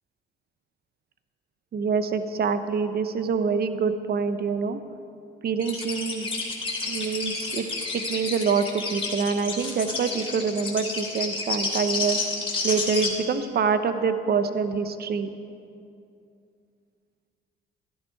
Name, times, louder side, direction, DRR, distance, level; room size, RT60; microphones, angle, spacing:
voice 1, 1.7-4.8 5.4-6.3 6.9-7.7 7.9-12.2 12.6-15.3, right 5 dB, 50° right, 11 dB, 0.8 m, -26 dB
sound 1, 5.6-13.1, left 3 dB, 25° left, 2.8 m, -30 dB
12.5 x 11.0 x 4.6 m, 2.5 s
supercardioid pair, 70°, 21 cm